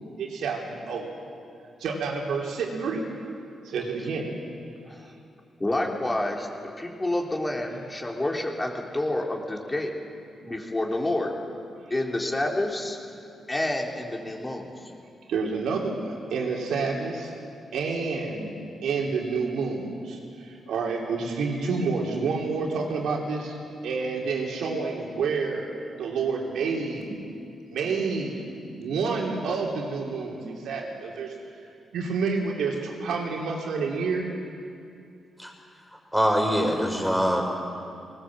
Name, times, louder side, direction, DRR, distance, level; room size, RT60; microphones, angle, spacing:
voice 1, 0.2-1.1 1.8-3.1 3.6-4.3 15.3-17.3 17.7-18.5 18.8-23.6 23.8-25.7 26.0-27.1 27.7-28.4 28.7-31.3 31.9-34.3, right 4 dB, 85° right, 0 dB, 3.2 m, -29 dB
voice 2, 5.6-9.9 10.4-11.3 11.9-13.0 13.5-14.9, left 1 dB, 20° left, 0 dB, 3.1 m, -28 dB
voice 3, 36.1-37.5, equal, 5° left, 0 dB, 5.4 m, -23 dB
19.5 x 19.5 x 7.6 m, 2.5 s
cardioid pair, 70°, 0 cm